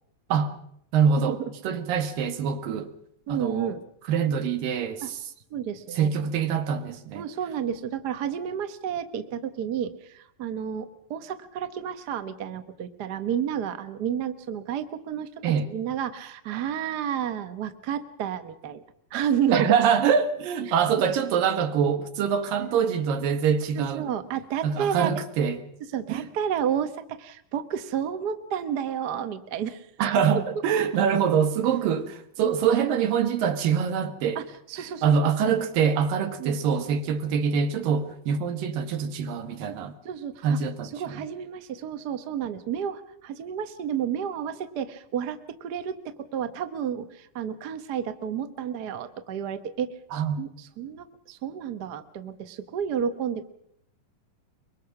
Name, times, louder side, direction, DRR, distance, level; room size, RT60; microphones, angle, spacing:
voice 1, 0.9-1.4 1.6-2.9 3.3-3.7 4.1-5.2 5.9-7.3 15.4-15.7 19.5-24.1 24.6-25.6 26.1-26.2 30.0-34.4 35.0-39.9 40.4-41.2 50.1-50.4, right 7 dB, 85° right, 3.3 m, -24 dB
voice 2, 3.3-3.8 5.0-5.1 5.5-6.1 7.1-15.3 15.7-18.8 19.1-19.7 20.7-20.8 22.6-22.8 23.7-25.1 25.9-29.9 32.4-32.5 34.3-34.4 34.7-35.3 36.4-36.6 39.7-39.8 40.0-40.6 40.9-53.5, right 8 dB, 60° right, 1.0 m, -31 dB
24.0 x 23.0 x 5.9 m
omnidirectional pair, 3.9 m